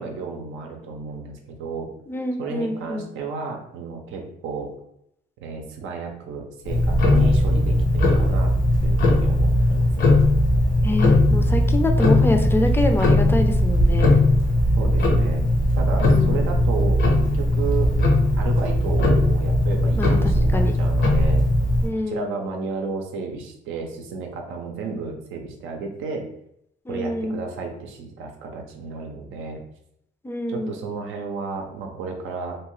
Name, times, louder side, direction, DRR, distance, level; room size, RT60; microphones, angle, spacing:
voice 1, 0.0-1.9 2.4-4.7 5.4-8.5 8.8-10.1 14.7-15.5 15.8-17.9 18.4-21.4 22.1-26.3 26.9-29.6 30.5-32.6, right 4 dB, 90° right, 2 dB, 0.6 m, -32 dB
voice 2, 2.1-3.1 10.8-14.1 16.0-16.4 20.0-20.7 21.8-22.3 26.9-27.4 30.2-30.7, left 1 dB, 10° left, 5 dB, 0.4 m, -26 dB
Tick-tock, 6.7-21.9, left 1 dB, 75° left, 0.8 m, -19 dB
2.8 x 2.3 x 3.0 m, 0.75 s
cardioid pair, 90°, 20 cm